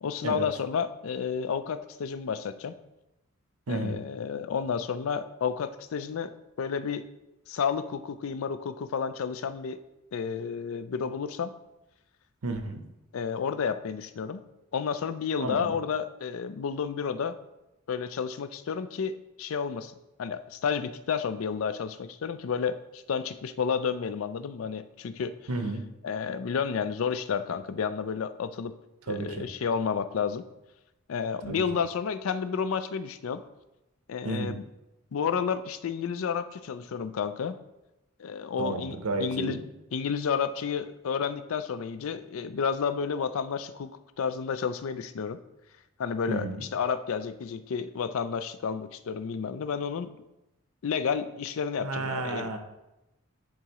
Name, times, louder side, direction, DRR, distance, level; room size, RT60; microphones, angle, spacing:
voice 1, 0.0-2.7 3.7-6.3 6.6-7.0 7.5-9.8 10.1-11.5 13.1-14.4 14.7-17.3 17.9-19.1 19.4-19.9 20.2-25.3 26.0-28.7 29.1-30.4 31.1-33.4 34.1-34.6 35.1-37.5 38.2-39.6 39.9-43.9 44.2-45.4 46.0-50.1 50.8-52.5, left 6 dB, 70° left, 11 dB, 0.4 m, -31 dB
voice 2, 3.7-4.0 12.4-12.8 15.4-15.8 25.5-25.8 29.1-29.4 31.5-31.6 34.2-34.6 38.6-39.6 46.3-46.6 51.8-52.6, right 2 dB, 85° right, 6 dB, 0.8 m, -32 dB
10.0 x 3.6 x 3.0 m, 0.95 s
head